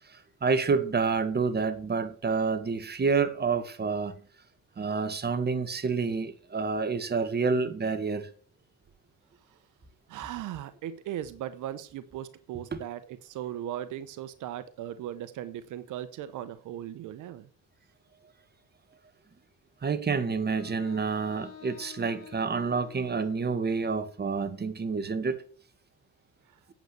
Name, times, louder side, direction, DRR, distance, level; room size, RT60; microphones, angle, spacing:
voice 1, 0.1-4.1 4.8-8.3 12.7-12.8 19.8-25.4, right 5 dB, 35° right, 1.7 m, -28 dB
voice 2, 10.1-17.5, right 11 dB, 85° right, 1.0 m, -38 dB
Wind instrument woodwind instrument, 20.5-24.5, left 10 dB, 55° left, 3.1 m, -49 dB
9.2 x 8.1 x 6.7 m
cardioid pair, 90°, 30 cm